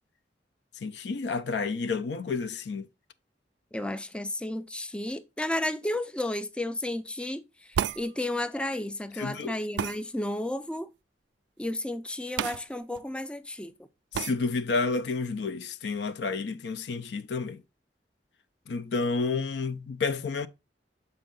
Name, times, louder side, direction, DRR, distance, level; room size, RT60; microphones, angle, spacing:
voice 1, 0.8-2.9 9.2-9.6 14.1-17.6 18.7-20.5, left 4 dB, 75° left, 0.5 m, -30 dB
voice 2, 3.7-10.9 11.6-13.7, left 1 dB, 5° left, 0.3 m, -32 dB
sound 1, 7.7-8.0 9.8-10.0 12.4-12.6 12.9-13.0 14.1-14.3, right 8 dB, 90° right, 0.3 m, -30 dB
6.6 x 4.5 x 3.7 m
head